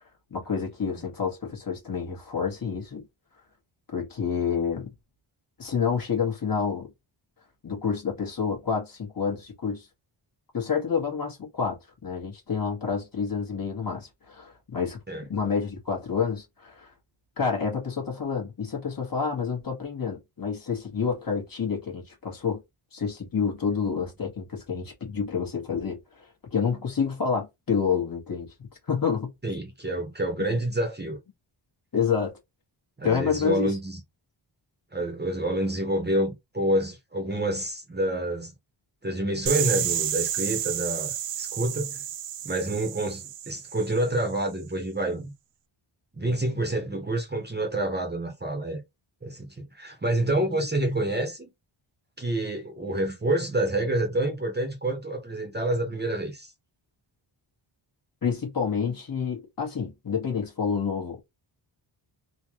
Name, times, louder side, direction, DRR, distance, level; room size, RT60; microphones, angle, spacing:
voice 1, 0.3-3.0 3.9-4.9 5.6-6.9 7.6-9.9 10.5-11.8 12.0-15.0 15.3-16.9 17.4-22.6 22.9-26.3 26.5-29.3 31.9-32.3 33.0-33.8 58.2-61.2, left 6 dB, 45° left, 1.4 m, -28 dB
voice 2, 29.4-31.2 33.0-34.0 34.9-38.5 39.0-42.0 42.4-45.3 46.1-48.8 49.2-51.5 52.2-56.5, right 1 dB, 20° right, 1.0 m, -28 dB
sound 1, 39.5-44.2, right 10 dB, 65° right, 0.6 m, -31 dB
3.8 x 2.4 x 2.9 m
wide cardioid pair, 145°, 50 cm